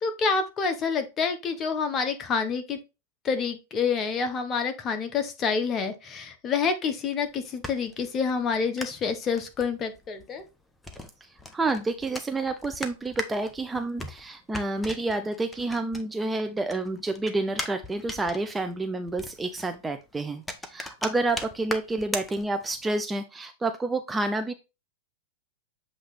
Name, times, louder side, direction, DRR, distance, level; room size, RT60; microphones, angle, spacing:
voice 1, 0.0-2.8 3.2-10.4, left 5 dB, 30° left, 7 dB, 1.2 m, -28 dB
sound 1, 7.2-16.4 16.7-22.9, left 1 dB, 10° left, 0.9 m, -39 dB
voice 2, 11.5-20.4 20.7-24.5, right 2 dB, 10° right, 8 dB, 0.6 m, -29 dB
7.6 x 3.1 x 4.1 m, 0.27 s
hypercardioid pair, 110°, 0 cm